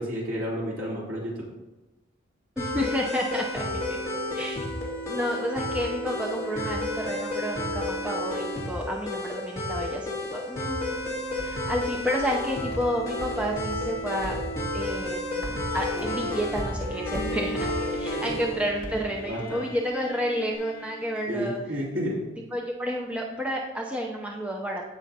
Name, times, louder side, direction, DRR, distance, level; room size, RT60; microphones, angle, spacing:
voice 1, 0.0-1.4 18.2-18.4 19.2-19.6 21.3-22.2, equal, 70° right, -6 dB, 3.3 m, -31 dB
sound 1, 2.6-18.6, left 1 dB, 15° left, 2.5 m, -31 dB
voice 2, 2.6-4.0 4.4-4.7 5.1-11.0 11.4-14.4 14.7-21.6 22.5-24.8, equal, 5° right, -1 dB, 0.6 m, -30 dB
sound 2, 11.0-19.8, equal, 45° right, 1.2 m, -40 dB
Bowed string instrument, 16.9-21.9, left 2 dB, 45° left, 0.7 m, -40 dB
15.5 x 5.6 x 2.8 m, 1.1 s
head